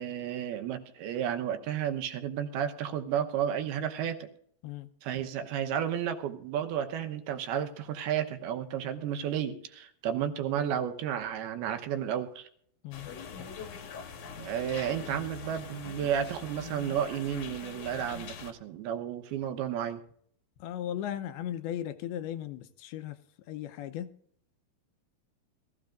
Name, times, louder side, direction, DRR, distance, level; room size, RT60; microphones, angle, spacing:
voice 1, 0.0-4.3 5.0-12.5 14.4-20.0, right 9 dB, 85° right, 3.1 m, -32 dB
sound 1, 12.9-18.5, left 6 dB, 60° left, 1.9 m, -43 dB
voice 2, 20.6-23.2 23.5-24.1, left 11 dB, 85° left, 2.7 m, -37 dB
22.0 x 14.5 x 2.5 m
omnidirectional pair, 4.4 m